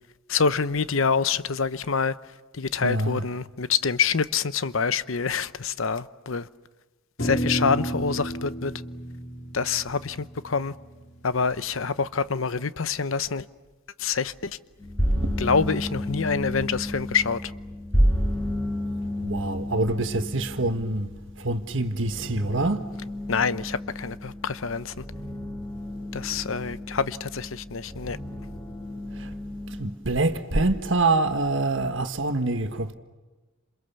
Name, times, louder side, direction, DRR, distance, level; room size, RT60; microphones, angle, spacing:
voice 1, 0.3-2.2 2.5-6.5 7.2-8.7 9.5-10.7 11.2-13.4 14.0-14.6 15.4-17.5 23.3-25.0 26.1-28.2, left 5 dB, 75° left, 0.8 m, -26 dB
voice 2, 2.8-3.2 15.1-15.4 19.2-21.1 21.4-22.9 29.1-29.3 29.8-32.9, right 2 dB, 65° right, 1.6 m, -25 dB
sound 1, 7.2-11.7, right 1 dB, 55° left, 3.2 m, -32 dB
sound 2, 14.8-29.9, equal, 10° left, 6.5 m, -31 dB
29.5 x 27.5 x 7.0 m
head